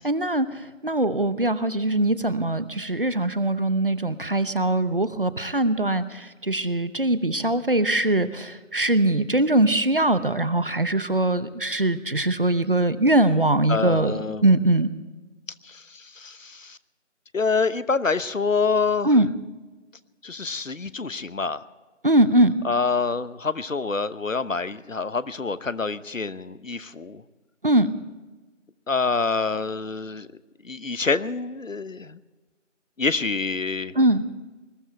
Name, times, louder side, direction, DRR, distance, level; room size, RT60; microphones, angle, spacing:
voice 1, 0.0-14.9 19.0-19.3 22.0-22.5 27.6-27.9 33.9-34.2, right 1 dB, 45° right, 14 dB, 0.9 m, -22 dB
voice 2, 13.7-14.5 15.6-16.8 17.3-19.2 20.2-21.6 22.6-27.2 28.9-30.3 30.6-32.2 33.0-33.9, left 4 dB, 85° left, 15 dB, 1.1 m, -26 dB
21.5 x 14.0 x 4.4 m, 1.2 s
figure-of-eight pair, 175°, 38 cm